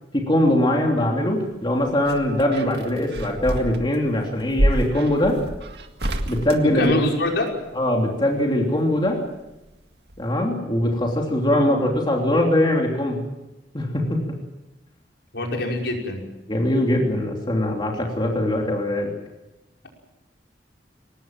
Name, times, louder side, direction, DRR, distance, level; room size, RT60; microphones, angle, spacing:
voice 1, 0.1-5.4 6.2-7.0 7.7-9.2 10.2-13.2 13.7-14.2 16.5-19.1, left 1 dB, 25° left, 0 dB, 3.1 m, -21 dB
sound 1, 1.5-7.6 9.0-9.8 10.1-10.2, right 1 dB, 65° right, 2.0 m, -28 dB
voice 2, 6.7-7.5 15.3-16.2, left 1 dB, 70° left, 0 dB, 5.4 m, -24 dB
23.5 x 19.5 x 7.5 m, 0.97 s
head